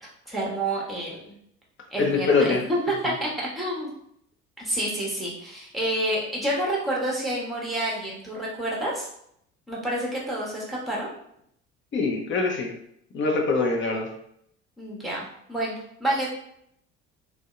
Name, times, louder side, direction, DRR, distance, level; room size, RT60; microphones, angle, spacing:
voice 1, 0.3-1.4 1.9-3.9 4.6-9.1 9.7-11.1 14.8-16.3, right 1 dB, ahead, -4 dB, 0.9 m, -28 dB
voice 2, 2.0-2.6 11.9-12.7 13.1-14.1, left 4 dB, 30° left, 1 dB, 0.6 m, -23 dB
2.6 x 2.0 x 2.4 m, 0.71 s
figure-of-eight pair, 55°, 37 cm